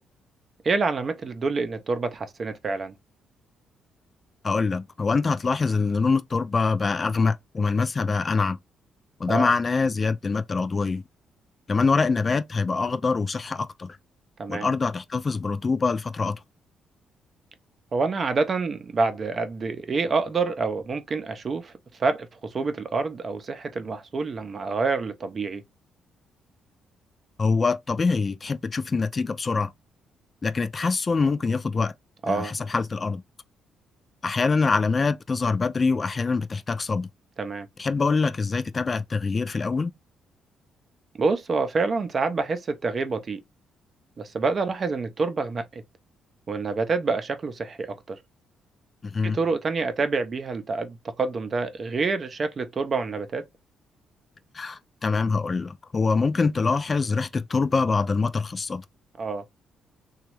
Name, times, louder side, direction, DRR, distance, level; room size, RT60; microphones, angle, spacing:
voice 1, 0.6-2.9 9.3-9.5 14.4-14.7 17.9-21.7 22.0-25.6 32.2-32.5 37.4-37.7 41.2-43.4 44.2-45.8 46.5-48.2 49.2-53.5 59.2-59.4, right 4 dB, 40° right, 0.5 m, -27 dB
voice 2, 4.4-8.6 9.2-11.0 11.7-14.0 14.5-16.4 27.4-29.7 30.4-31.9 32.3-33.2 34.2-37.1 37.8-39.9 49.0-49.4 54.5-58.8, left 4 dB, 35° left, 0.3 m, -24 dB
3.0 x 2.3 x 3.0 m
cardioid pair, 90°, 0 cm